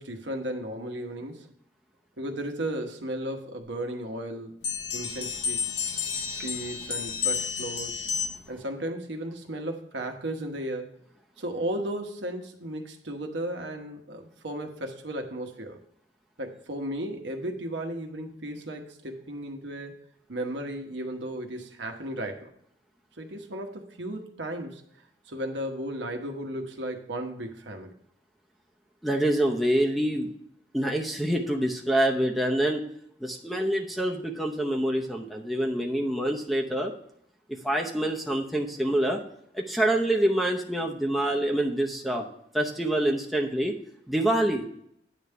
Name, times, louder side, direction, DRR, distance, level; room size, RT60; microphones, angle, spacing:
voice 1, 0.0-1.5 2.2-4.5 4.9-5.8 6.3-8.0 8.5-10.9 11.4-15.8 16.4-19.9 20.3-22.5 23.2-24.8 25.3-27.9, right 1 dB, 80° right, 4 dB, 1.1 m, -35 dB
sound 1, 4.6-8.6, left 6 dB, 70° left, 1.0 m, -31 dB
voice 2, 29.0-30.3 30.7-32.8 33.2-36.9 37.6-39.2 39.5-42.3 42.5-43.7 44.1-44.6, right 1 dB, ahead, -1 dB, 0.7 m, -26 dB
9.3 x 3.6 x 6.6 m, 0.70 s
head